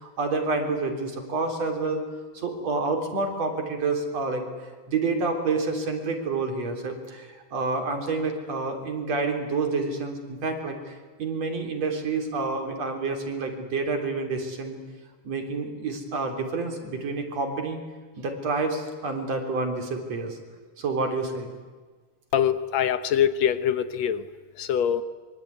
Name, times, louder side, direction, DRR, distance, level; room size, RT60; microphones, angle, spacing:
voice 1, 0.0-2.0 2.3-14.8 15.2-17.8 18.2-20.4 20.8-21.5, right 3 dB, 60° right, 4 dB, 4.6 m, -28 dB
voice 2, 22.3-24.3 24.6-25.0, left 9 dB, 70° left, 12 dB, 2.1 m, -23 dB
25.0 x 24.5 x 9.6 m, 1.4 s
omnidirectional pair, 3.3 m